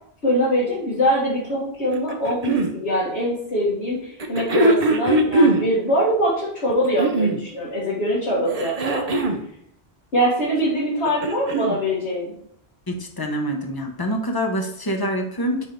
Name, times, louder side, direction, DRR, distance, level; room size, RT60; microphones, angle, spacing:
voice 1, 0.2-9.0 10.1-12.3, equal, 85° left, -9 dB, 1.9 m, -23 dB
sound 1, 1.9-2.7 4.2-5.7 6.7-7.4 8.5-9.4 10.9-11.8 12.9-13.0, right 2 dB, 40° right, 0.7 m, -21 dB
voice 2, 12.9-15.7, equal, 25° left, 4 dB, 0.8 m, -26 dB
4.4 x 4.1 x 5.2 m, 0.68 s
omnidirectional pair, 1.1 m